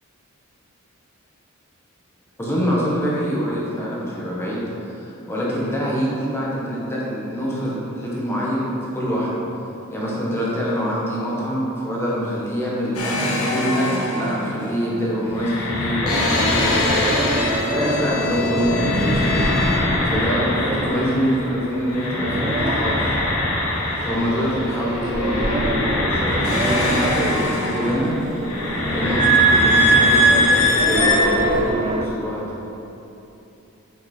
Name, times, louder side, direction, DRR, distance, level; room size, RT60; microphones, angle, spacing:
voice 1, 2.4-9.4 9.9-19.3 20.0-23.1 24.0-28.1 28.9-32.4, equal, 10° left, -6 dB, 1.3 m, -25 dB
sound 1, 12.9-21.6 21.9-31.6, equal, 85° left, 1.3 m, -21 dB
sound 2, 16.6-32.1, right 2 dB, 25° right, 0.3 m, -29 dB
7.1 x 5.9 x 4.4 m, 2.9 s
head